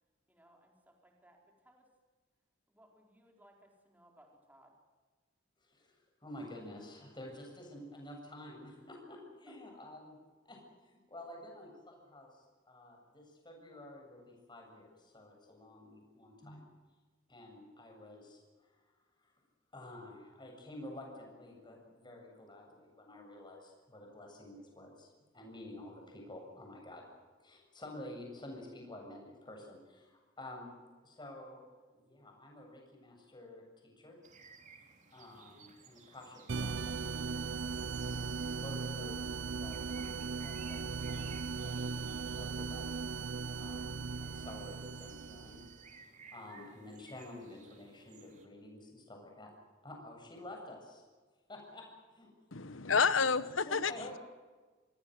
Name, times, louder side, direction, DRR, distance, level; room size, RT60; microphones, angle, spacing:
voice 1, 0.3-1.9 2.7-4.7, right 1 dB, 10° right, 1 dB, 4.5 m, -64 dB
voice 2, 5.6-10.2 10.4-16.6 17.3-18.9 19.2-19.3 19.7-27.1 27.4-30.7 31.0-34.2 35.1-37.1 38.0-43.0 43.6-45.6 45.9-49.5 49.8-51.0 51.5-51.8 52.1-52.3 53.6-54.2, left 1 dB, 25° left, 1 dB, 7.6 m, -50 dB
sound 1, 34.2-48.5, right 5 dB, 40° right, 3.2 m, -59 dB
sound 2, 36.5-45.9, right 4 dB, 65° right, 0.7 m, -38 dB
voice 3, 52.5-54.2, left 5 dB, 80° left, 15 dB, 1.2 m, -30 dB
27.5 x 19.5 x 8.0 m, 1.4 s
head